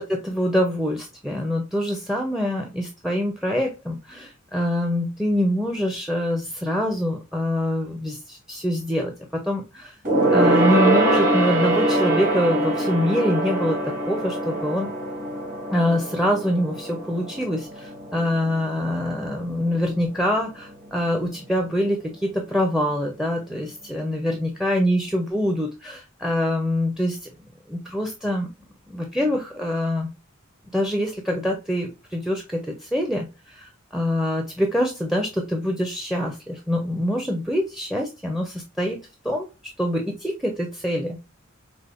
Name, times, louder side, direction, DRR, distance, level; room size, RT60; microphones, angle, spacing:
voice 1, 0.0-10.0 10.3-14.9 15.7-27.2 27.7-28.5 28.9-30.1 30.7-39.0 39.2-39.5 39.8-41.2, equal, ahead, 3 dB, 0.5 m, -25 dB
Gong, 10.0-19.8 20.1-20.4 20.7-20.8, right 1 dB, 40° right, 1.3 m, -23 dB
4.9 x 2.1 x 2.4 m, 0.27 s
head